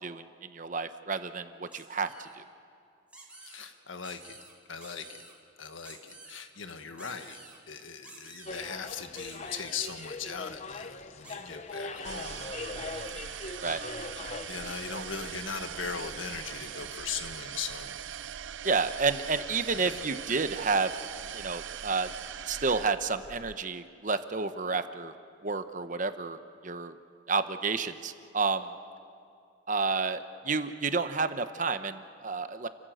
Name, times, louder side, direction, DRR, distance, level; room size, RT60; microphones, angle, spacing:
voice 1, 0.0-2.4 11.4-11.6 13.6-13.8 18.6-20.9 21.3-22.1 22.5-25.1 25.4-27.0 27.3-28.7 29.7-32.7, right 4 dB, 40° right, 10 dB, 0.9 m, -30 dB
sound 1, 1.7-2.4 3.1-3.7 4.0-4.5 4.8-5.3 5.8-6.4 7.0-7.6 8.0-8.7 9.1-10.1 11.2-11.4 11.7-12.5, right 2 dB, 5° right, 3.8 m, -51 dB
voice 2, 3.4-4.4 4.7-5.2 5.6-7.4 7.7-12.5 14.5-18.0 19.7-20.0, left 6 dB, 85° left, 8 dB, 1.5 m, -39 dB
sound 2, 8.5-17.4, left 3 dB, 35° left, 0.8 m, -42 dB
sound 3, 12.0-23.6, right 9 dB, 75° right, 0.5 m, -41 dB
29.5 x 15.5 x 7.8 m, 2.5 s
head